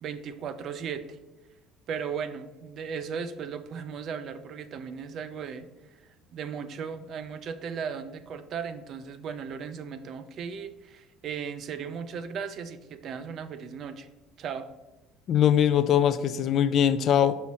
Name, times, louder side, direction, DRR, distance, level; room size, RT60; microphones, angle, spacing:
voice 1, 0.0-1.2 1.9-5.7 6.3-14.1 14.4-14.7, right 6 dB, 40° right, 12 dB, 0.4 m, -36 dB
voice 2, 15.3-17.4, left 9 dB, 40° left, 13 dB, 0.3 m, -22 dB
5.6 x 4.1 x 6.0 m, 1.1 s
cardioid pair, 165°, 0 cm